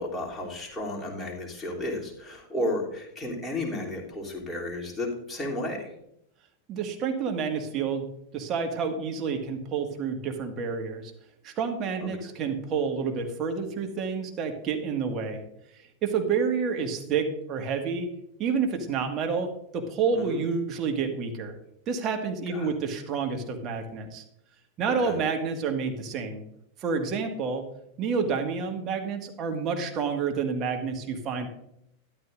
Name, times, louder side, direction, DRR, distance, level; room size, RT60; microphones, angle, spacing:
voice 1, 0.0-5.9 12.0-12.3 20.1-20.4 22.5-22.7 24.9-25.2, left 1 dB, 10° left, -3 dB, 3.1 m, -33 dB
voice 2, 6.7-8.1 8.3-11.1 11.4-15.4 16.0-18.1 18.4-21.5 21.9-24.2 24.8-26.4 26.8-27.6 28.0-31.5, right 5 dB, 35° right, 4 dB, 1.8 m, -29 dB
12.5 x 11.5 x 2.6 m, 0.75 s
figure-of-eight pair, 90°, 0 cm